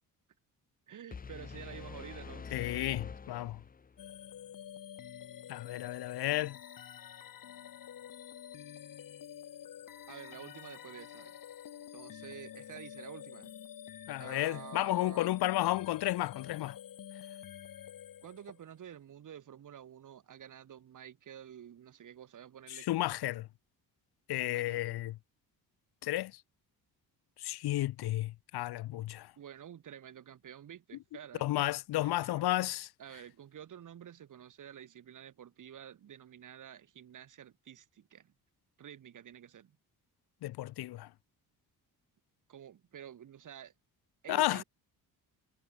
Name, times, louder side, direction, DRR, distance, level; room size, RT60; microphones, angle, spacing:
voice 1, 0.9-2.5 10.1-11.4 11.9-13.5 14.2-15.3 18.2-23.1 24.3-24.9 29.4-31.7 32.0-32.4 33.0-38.3 38.8-39.8 42.5-43.7 44.2-44.6, right 9 dB, 55° right, 3.0 m, -50 dB
sound 1, 1.1-4.1, left 5 dB, 25° left, 1.1 m, -45 dB
voice 2, 2.5-3.6 5.5-6.6 14.1-16.8 22.7-23.5 24.3-25.2 26.0-26.4 27.4-29.3 31.4-32.9 40.4-41.1 44.3-44.6, left 15 dB, 80° left, 0.9 m, -32 dB
sound 2, 4.0-18.7, left 10 dB, 60° left, 5.7 m, -48 dB
cardioid pair, 150°, 38 cm